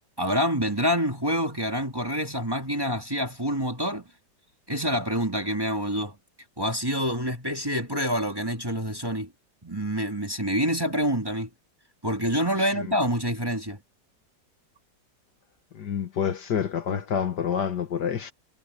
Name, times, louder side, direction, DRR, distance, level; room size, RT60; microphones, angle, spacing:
voice 1, 0.2-4.1 4.7-6.2 6.6-9.3 9.6-11.5 12.0-13.8, equal, 10° right, 2.2 m, -27 dB
voice 2, 12.6-12.9 15.7-18.3, left 7 dB, 65° left, 2.0 m, -28 dB
omnidirectional pair, 2.0 m